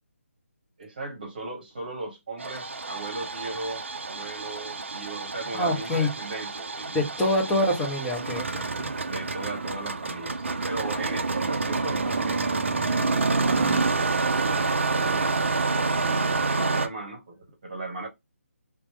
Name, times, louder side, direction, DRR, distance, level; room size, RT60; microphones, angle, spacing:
voice 1, 0.8-6.9 7.4-7.6 9.0-15.5 16.0-18.1, right 2 dB, 40° right, 1.0 m, -37 dB
Engine starting, 2.4-16.9, right 3 dB, 60° right, 0.4 m, -28 dB
voice 2, 5.5-6.1 6.9-8.9, left 1 dB, 5° left, 0.5 m, -26 dB
2.9 x 2.0 x 3.0 m
figure-of-eight pair, 150°, 7 cm